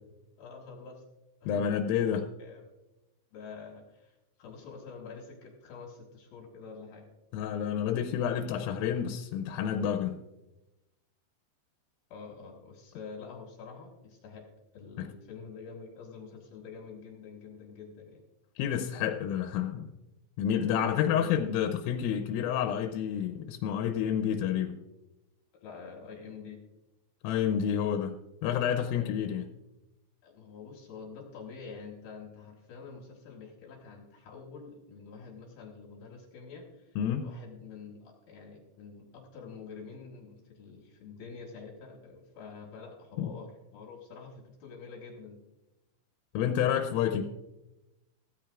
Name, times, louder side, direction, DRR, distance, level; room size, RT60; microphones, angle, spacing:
voice 1, 0.4-1.0 1.4-1.7 2.4-2.6 3.3-7.1 12.1-14.4 14.7-18.2 21.1-21.5 25.6-26.6 28.9-29.1 30.2-45.4, left 5 dB, 60° left, 0 dB, 2.8 m, -47 dB
voice 2, 1.5-2.3 7.3-10.2 15.0-15.1 18.6-19.9 20.4-24.8 27.2-28.1 28.4-29.4 37.0-37.3 43.2-43.3 46.3-47.2, left 9 dB, 85° left, 6 dB, 3.3 m, -29 dB
16.0 x 13.5 x 2.5 m, 0.97 s
omnidirectional pair, 5.8 m